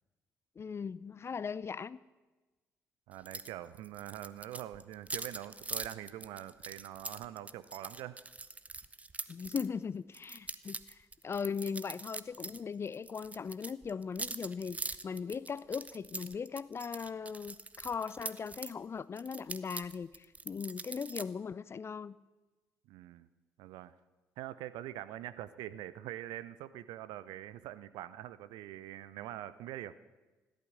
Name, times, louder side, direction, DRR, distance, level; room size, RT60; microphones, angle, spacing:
voice 1, 0.6-2.0 9.3-22.2, left 6 dB, 35° left, 19 dB, 0.5 m, -39 dB
voice 2, 3.1-8.2 22.9-23.3 23.6-23.9 24.4-29.9, right 13 dB, 60° right, 15 dB, 0.6 m, -44 dB
sound 1, 3.3-3.5 3.8-9.7 10.1-12.6 12.9-18.7 19.2-21.2, right 3 dB, 15° right, 0.7 m, -43 dB
14.0 x 12.0 x 6.4 m, 1.2 s
figure-of-eight pair, 45°, 8 cm